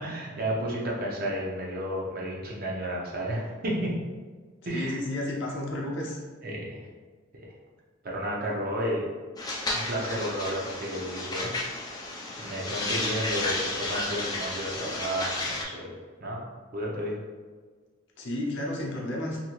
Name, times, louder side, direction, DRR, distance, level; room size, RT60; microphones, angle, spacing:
voice 1, 0.0-3.9 4.7-5.0 6.4-6.8 7.3-7.5 8.0-9.1 9.7-11.5 12.4-16.4 16.7-17.2, equal, 45° right, -3 dB, 0.6 m, -32 dB
voice 2, 4.7-6.2 18.2-19.4, left 1 dB, 55° left, -3 dB, 0.6 m, -32 dB
sound 1, 9.4-15.6, left 2 dB, 20° left, 0.3 m, -32 dB
2.7 x 2.6 x 2.9 m, 1.5 s
head